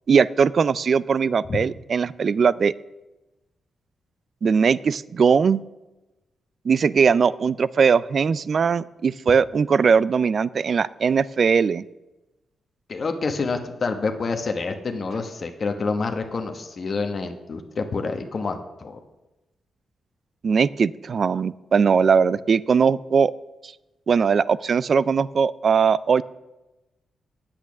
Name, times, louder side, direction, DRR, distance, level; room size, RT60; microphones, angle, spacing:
voice 1, 0.1-2.7 4.4-5.6 6.7-11.8 20.4-23.3 24.1-26.2, right 6 dB, 55° right, 20 dB, 0.3 m, -20 dB
voice 2, 12.9-19.0, left 4 dB, 50° left, 5 dB, 1.0 m, -27 dB
8.8 x 8.2 x 6.1 m, 1.0 s
cardioid pair, 85°, 0 cm